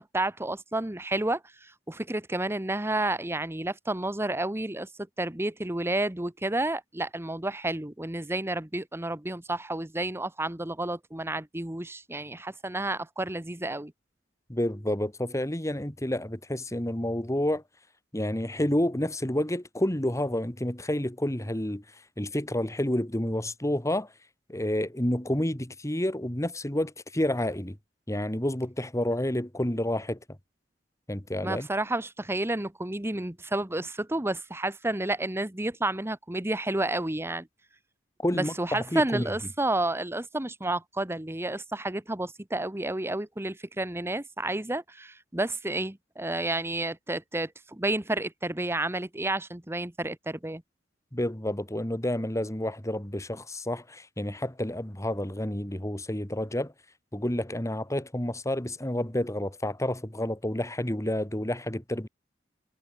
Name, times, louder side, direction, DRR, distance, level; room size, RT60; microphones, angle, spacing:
voice 1, 0.0-4.9 5.2-13.9 31.4-37.5 38.3-50.6, right 2 dB, 15° right, 1.2 m, -31 dB
voice 2, 14.5-17.6 18.1-21.8 22.2-24.1 24.5-27.8 28.1-30.2 31.1-31.7 38.2-39.3 51.1-56.7 57.1-62.1, left 1 dB, 15° left, 2.3 m, -29 dB
head